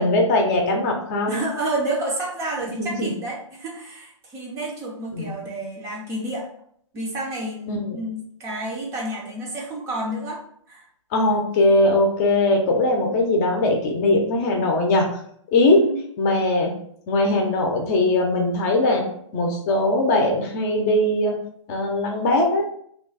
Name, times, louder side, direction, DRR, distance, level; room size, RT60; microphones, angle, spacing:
voice 1, 0.0-1.4 2.8-3.1 5.1-5.3 7.7-8.0 11.1-15.2 15.5-15.8 16.2-16.7 17.1-19.0 19.3-21.3 21.7-22.6, left 2 dB, 30° left, 2 dB, 0.7 m, -20 dB
voice 2, 1.3-6.5 6.9-10.4 10.7-10.8 15.7-16.0, right 1 dB, 20° right, -2 dB, 0.5 m, -30 dB
3.0 x 2.3 x 4.0 m, 0.66 s
hypercardioid pair, 145°, 16 cm